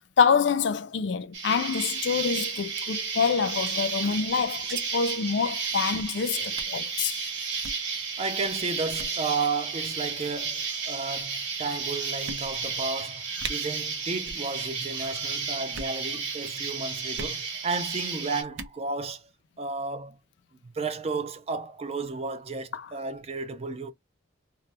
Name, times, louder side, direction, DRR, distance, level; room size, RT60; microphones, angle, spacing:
voice 1, 0.2-7.2 22.7-22.9, left 6 dB, 65° left, 0.4 m, -26 dB
Insect, 1.3-18.4, right 5 dB, 60° right, 1.5 m, -33 dB
sound 1, 3.4-4.8 5.1-5.2 5.4-5.6 6.0-6.2 6.6-6.8 7.5-7.8 8.4-8.6 8.9-9.2 10.0-10.5 11.2-11.3 11.7-11.8 12.2-12.8 13.1-13.2 13.4-13.6 14.2-14.5 14.7-15.1 15.6-16.0 17.1-17.4 18.4-18.8, right 4 dB, 80° right, 0.7 m, -40 dB
voice 2, 8.2-13.2 13.5-19.2 19.6-20.2 20.7-23.9, right 4 dB, 30° right, 0.4 m, -33 dB
2.9 x 2.1 x 3.2 m
head